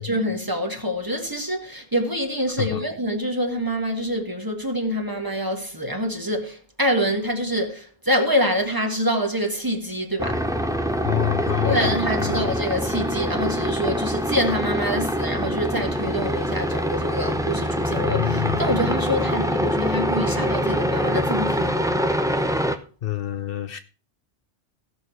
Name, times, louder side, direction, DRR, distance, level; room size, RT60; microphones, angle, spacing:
voice 1, 0.0-10.5 11.6-22.0, equal, 20° right, 1.6 m, -26 dB
sound 1, 10.2-22.8, equal, 5° right, 0.6 m, -24 dB
voice 2, 11.0-12.5 18.0-18.8 23.0-23.8, left 12 dB, 65° left, 0.9 m, -27 dB
16.0 x 6.2 x 4.6 m
omnidirectional pair, 1.1 m